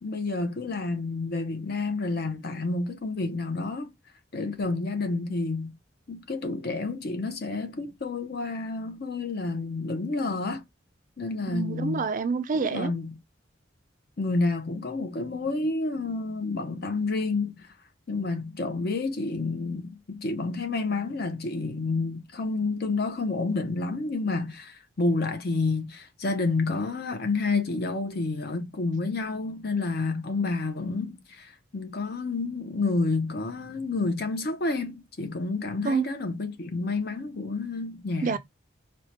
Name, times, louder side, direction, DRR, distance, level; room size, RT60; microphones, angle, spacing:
voice 1, 0.0-3.9 4.3-5.8 6.1-10.6 11.2-12.1 12.5-13.1 14.2-17.7 18.1-38.4, left 3 dB, 55° left, 0.7 m, -29 dB
voice 2, 11.5-12.9 35.8-36.1 38.2-38.4, right 5 dB, 45° right, 0.4 m, -27 dB
4.3 x 2.2 x 2.8 m
head